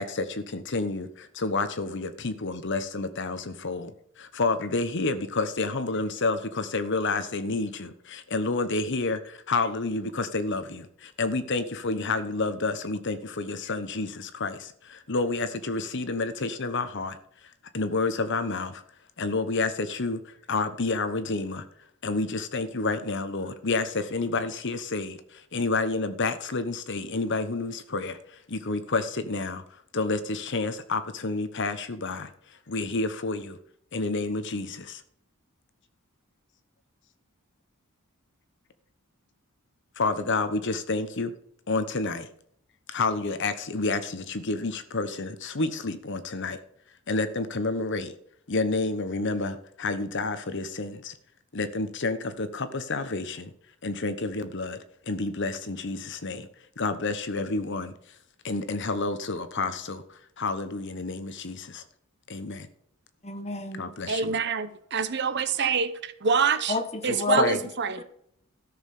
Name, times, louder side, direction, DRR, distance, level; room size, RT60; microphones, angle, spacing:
voice 1, 0.0-3.9 4.2-17.2 17.7-18.8 19.2-21.6 22.0-25.2 25.5-28.2 28.5-29.6 29.9-32.3 32.7-33.6 33.9-35.0 40.0-41.3 41.7-42.3 42.9-46.6 47.1-48.1 48.5-51.1 51.5-53.5 53.8-54.8 55.1-56.5 56.8-57.9 58.4-60.0 60.4-61.8 62.3-62.7 63.8-64.3 67.1-67.6, left 3 dB, 55° left, 11 dB, 1.0 m, -29 dB
voice 2, 63.2-63.9 66.7-67.7 68.0-68.1, left 3 dB, 30° left, 7 dB, 1.3 m, -30 dB
voice 3, 64.1-66.7 67.0-68.0, right 5 dB, 50° right, 13 dB, 0.8 m, -26 dB
13.0 x 6.7 x 5.4 m, 0.69 s
head